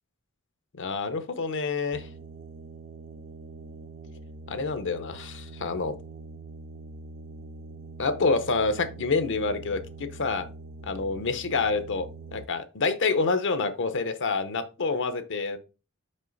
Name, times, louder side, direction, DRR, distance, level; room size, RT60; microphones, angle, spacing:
voice 1, 0.8-2.1 4.5-6.0 8.0-10.5 10.8-15.6, left 4 dB, 60° left, 10 dB, 0.8 m, -27 dB
sound 1, 1.9-12.5, right 2 dB, 40° right, 0.4 m, -44 dB
5.5 x 5.4 x 3.9 m, 0.33 s
head